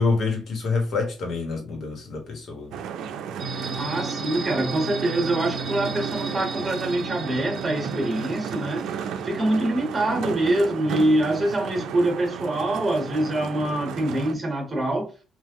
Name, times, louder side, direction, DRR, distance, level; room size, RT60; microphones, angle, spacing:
voice 1, 0.0-2.8, left 4 dB, 60° left, 1.4 m, -26 dB
sound 1, 2.7-14.3, right 7 dB, 85° right, 0.4 m, -34 dB
sound 2, 3.4-10.0, right 4 dB, 40° right, 1.3 m, -34 dB
voice 2, 3.7-9.0 9.2-15.1, right 1 dB, 25° right, 1.4 m, -25 dB
3.6 x 2.6 x 3.0 m
cardioid pair, 90°, 0 cm